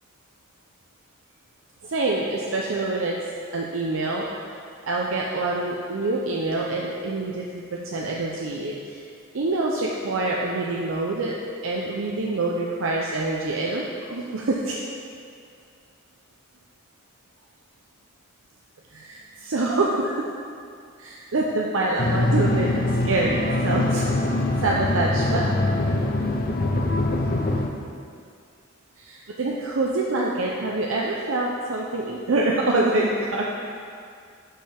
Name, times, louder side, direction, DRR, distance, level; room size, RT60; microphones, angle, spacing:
voice 1, 1.8-3.2 3.5-4.2 4.8-9.0 9.3-11.3 11.6-13.8 14.1-14.8 18.9-20.1 21.0-24.1 24.6-25.4 29.0-33.4, right 2 dB, 70° right, -3 dB, 0.6 m, -26 dB
sound 1, 22.0-27.7, left 2 dB, 45° left, 0.5 m, -23 dB
8.7 x 5.5 x 3.4 m, 2.3 s
head